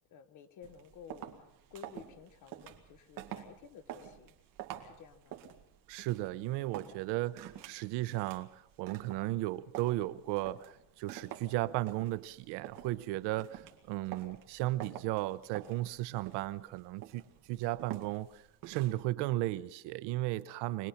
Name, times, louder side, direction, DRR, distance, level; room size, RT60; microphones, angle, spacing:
voice 1, 0.1-1.4 1.7-4.3 4.8-5.4, left 8 dB, 40° left, 1.3 m, -53 dB
sound 1, 0.6-19.1, right 11 dB, 45° right, 2.2 m, -49 dB
voice 2, 5.9-17.2 17.5-20.9, right 17 dB, 60° right, 0.9 m, -35 dB
25.0 x 20.0 x 5.8 m
cardioid pair, 170°, 48 cm